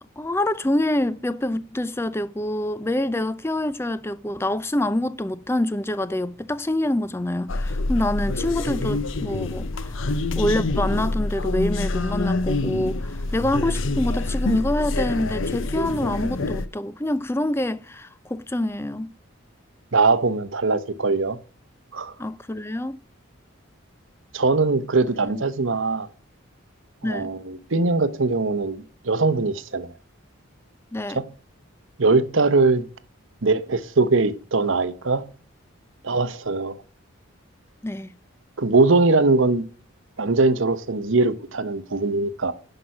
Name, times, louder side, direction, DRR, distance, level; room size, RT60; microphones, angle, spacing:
voice 1, 0.2-19.1 22.2-23.0 25.3-25.4 27.0-27.3 30.9-31.2 37.8-38.2, left 1 dB, 10° left, 0.4 m, -26 dB
sound 1, 7.5-16.7, left 2 dB, 65° left, 0.7 m, -26 dB
voice 2, 19.9-21.4 21.9-22.1 24.3-26.1 27.0-29.9 31.1-31.3 32.0-32.8 33.4-35.3 36.0-36.7 38.6-39.6 40.2-42.5, right 3 dB, 65° right, 0.9 m, -21 dB
10.5 x 5.7 x 4.8 m
head